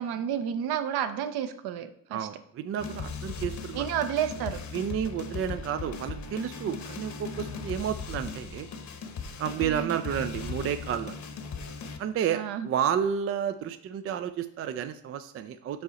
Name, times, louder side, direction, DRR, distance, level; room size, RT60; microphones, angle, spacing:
voice 1, 0.0-2.3 3.7-4.6 9.6-10.0 12.3-12.7, right 9 dB, 55° right, 9 dB, 0.8 m, -31 dB
voice 2, 2.1-3.9 4.7-8.7 9.4-11.2 12.0-15.8, right 9 dB, 30° right, 9 dB, 0.4 m, -31 dB
sound 1, 2.8-12.0, left 5 dB, 40° left, 1.0 m, -38 dB
5.4 x 4.6 x 4.0 m, 0.66 s
hypercardioid pair, 65°, 46 cm